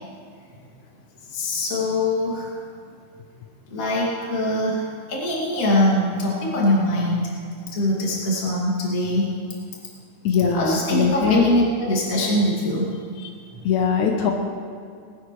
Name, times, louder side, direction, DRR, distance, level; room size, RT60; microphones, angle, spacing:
voice 1, 1.3-2.5 3.7-7.3 7.7-9.3 10.5-12.9, left 1 dB, 30° left, -5 dB, 2.6 m, -22 dB
voice 2, 10.3-11.5 13.7-14.3, left 6 dB, 75° left, 1 dB, 2.4 m, -20 dB
20.5 x 12.5 x 3.3 m, 2.3 s
omnidirectional pair, 3.5 m